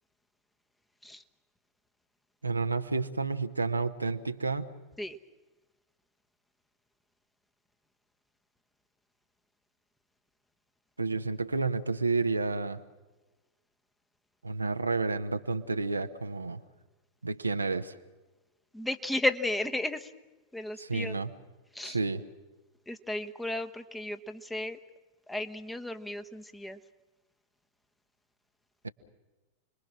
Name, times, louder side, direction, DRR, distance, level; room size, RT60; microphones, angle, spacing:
voice 1, 2.4-4.7 11.0-12.8 14.4-16.6 17.2-17.9 20.8-21.3 21.8-22.2 28.8-28.9, right 3 dB, 80° right, 7 dB, 1.1 m, -30 dB
voice 2, 18.7-20.1 20.5-21.2 21.7-22.0 22.9-24.8 25.3-26.8, left 1 dB, 5° left, 8 dB, 1.3 m, -34 dB
29.5 x 22.0 x 6.2 m, 1.1 s
figure-of-eight pair, 90°, 0 cm